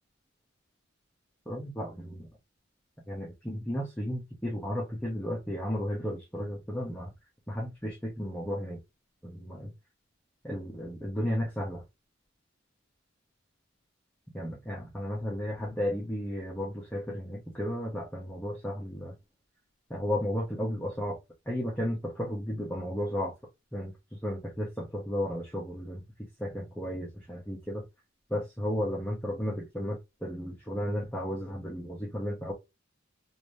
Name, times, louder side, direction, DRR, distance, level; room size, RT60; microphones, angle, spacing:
voice 1, 1.5-2.3 3.1-7.1 7.5-8.8 9.2-9.7 10.4-11.8 14.3-19.1 19.9-21.2 21.5-23.3 23.7-26.0 26.4-27.8 28.3-32.5, equal, 10° left, 1.0 m, -34 dB
3.0 x 2.7 x 3.2 m
head